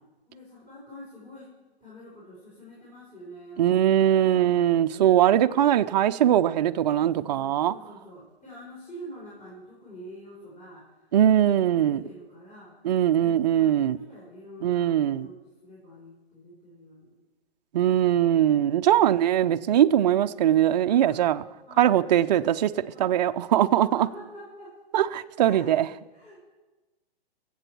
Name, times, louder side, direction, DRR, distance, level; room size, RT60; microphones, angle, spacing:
voice 1, 0.3-1.5 1.8-5.6 6.9-11.0 11.2-12.7 13.1-17.2 19.8-20.4 20.9-22.4 22.9-23.3 23.9-24.7 25.4-25.7 26.1-26.4, equal, 25° left, 4.1 m, -46 dB
voice 2, 3.6-7.7 11.1-12.0 12.8-14.0 14.6-15.3 17.7-21.4 21.8-24.1 24.9-25.9, right 11 dB, 45° right, 0.5 m, -21 dB
22.0 x 8.0 x 4.6 m
hypercardioid pair, 145°, 31 cm